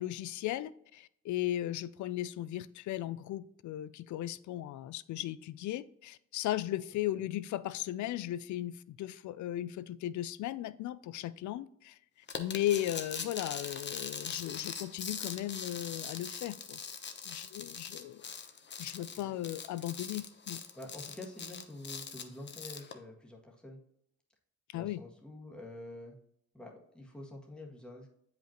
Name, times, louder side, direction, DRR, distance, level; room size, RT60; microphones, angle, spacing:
voice 1, 0.0-12.0 12.4-16.8 17.3-18.2 18.8-20.6 24.7-25.0, left 13 dB, 70° left, 0.5 m, -36 dB
sound 1, 12.3-22.9, left 6 dB, 35° left, 0.9 m, -42 dB
voice 2, 19.0-19.4 20.8-23.8 24.7-26.2 26.5-28.1, left 1 dB, 5° left, 1.8 m, -47 dB
8.0 x 5.2 x 3.0 m
cardioid pair, 90°, 30 cm